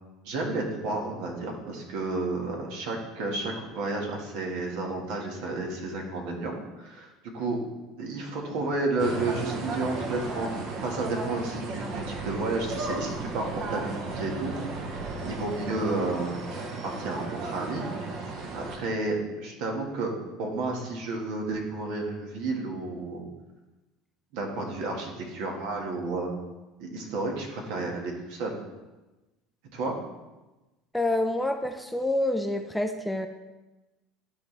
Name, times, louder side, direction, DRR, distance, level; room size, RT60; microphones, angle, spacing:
voice 1, 0.2-6.5 6.8-7.6 8.0-10.5 10.8-14.9 15.2-16.3 16.8-17.9 18.5-23.2 24.3-26.3 26.8-28.5 29.7-29.9, right 2 dB, 75° right, 1 dB, 1.6 m, -31 dB
sound 1, 9.0-18.8, right 3 dB, 55° right, 1.1 m, -34 dB
voice 2, 30.9-33.3, left 1 dB, 5° left, 7 dB, 0.5 m, -27 dB
12.0 x 4.3 x 3.3 m, 1.1 s
supercardioid pair, 115°, 0 cm